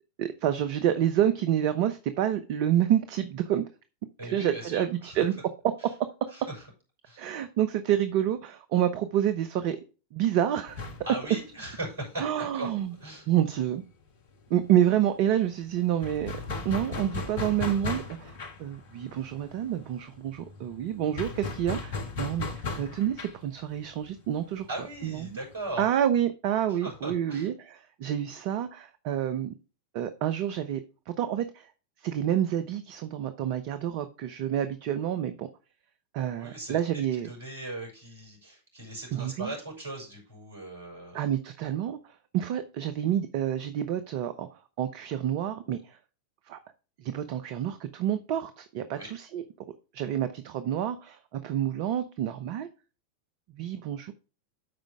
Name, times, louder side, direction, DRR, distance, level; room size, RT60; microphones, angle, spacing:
voice 1, 0.2-3.7 4.3-5.3 7.2-9.8 10.1-10.9 12.2-12.9 13.3-13.8 14.5-16.3 16.6-18.3 18.6-24.7 25.0-25.4 25.8-29.5 29.9-30.8 31.1-31.7 32.0-35.5 36.1-37.3 39.1-39.5 41.1-42.0 42.3-44.5 44.8-46.0 46.5-46.6 47.0-49.4 49.9-52.7 53.6-54.1, right 10 dB, 45° right, 11 dB, 0.8 m, -28 dB
voice 2, 4.2-5.2 5.8-5.9 6.3-6.7 7.0-7.3 11.0-12.7 13.0-13.3 24.7-25.9 26.7-27.5 36.4-36.8 37.2-41.3 48.9-49.1, right 1 dB, 60° right, 1 dB, 5.9 m, -39 dB
sound 1, 10.7-14.1 14.3-14.5 14.7-25.7, left 4 dB, 55° left, 1.6 m, -38 dB
13.0 x 5.2 x 3.5 m, 0.33 s
figure-of-eight pair, 90°, 0 cm